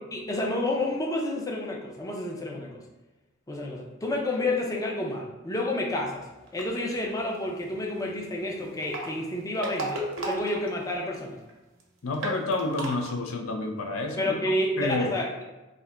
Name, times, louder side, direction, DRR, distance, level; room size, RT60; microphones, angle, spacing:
voice 1, 0.1-2.8 3.5-6.3 6.5-11.4 14.2-15.4, left 1 dB, 15° left, -1 dB, 0.5 m, -30 dB
sound 1, 6.5-6.9 8.7-11.2 11.5-11.6 11.8-11.9 12.1-13.1, right 2 dB, 75° right, 0.7 m, -34 dB
voice 2, 12.0-14.4 14.8-15.1, left 2 dB, 85° left, 3 dB, 0.5 m, -29 dB
2.8 x 2.4 x 3.3 m, 1.1 s
head